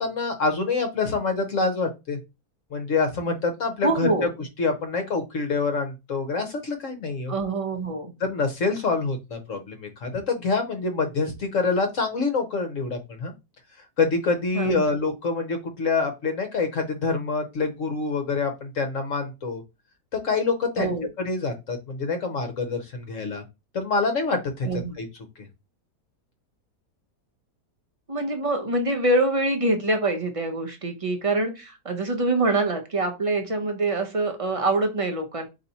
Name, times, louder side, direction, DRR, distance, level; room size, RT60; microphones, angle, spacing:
voice 1, 0.0-2.2 2.7-4.1 4.6-7.3 8.2-13.3 14.0-19.6 20.1-23.4 23.7-24.7 25.0-25.1, left 4 dB, 60° left, 6 dB, 1.1 m, -26 dB
voice 2, 3.8-4.3 7.3-8.1 14.5-14.8 20.8-21.1 24.7-24.9 28.1-35.5, right 2 dB, 30° right, 4 dB, 0.6 m, -25 dB
4.1 x 3.0 x 4.1 m, 0.25 s
omnidirectional pair, 1.7 m